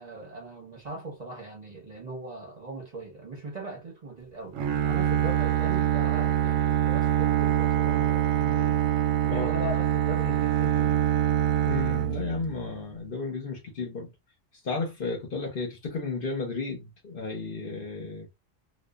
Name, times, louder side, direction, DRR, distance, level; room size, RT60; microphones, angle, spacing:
voice 1, 0.0-8.8 9.2-11.0, right 2 dB, 40° right, 0.8 m, -39 dB
Bowed string instrument, 4.5-12.8, right 11 dB, 85° right, 1.0 m, -25 dB
voice 2, 11.6-14.1 14.6-18.3, left 4 dB, 50° left, 0.9 m, -33 dB
2.4 x 2.3 x 2.3 m
omnidirectional pair, 1.3 m